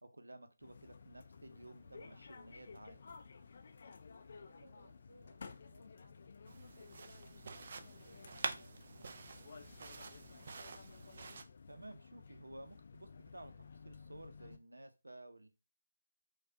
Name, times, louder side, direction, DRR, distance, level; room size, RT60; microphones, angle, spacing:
voice 1, 0.0-3.0 11.7-15.5, right 1 dB, 90° right, 7 dB, 0.7 m, -54 dB
sound 1, 0.6-14.6, left 5 dB, 45° left, 0.4 m, -55 dB
voice 2, 4.4-10.4, right 2 dB, 65° right, 3 dB, 1.3 m, -67 dB
sound 2, 6.5-11.4, right 4 dB, 45° right, 0.4 m, -47 dB
4.8 x 2.3 x 2.7 m, 0.29 s
figure-of-eight pair, 160°, 0 cm